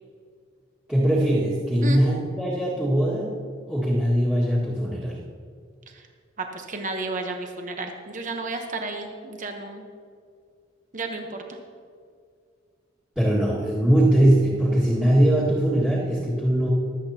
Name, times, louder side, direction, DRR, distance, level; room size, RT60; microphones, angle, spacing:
voice 1, 0.9-3.4 3.7-5.2 13.2-16.7, right 1 dB, 5° right, -10 dB, 1.8 m, -21 dB
voice 2, 6.4-9.8 10.9-11.4, right 2 dB, 45° right, 4 dB, 1.0 m, -32 dB
24.0 x 8.1 x 2.9 m, 2.2 s
head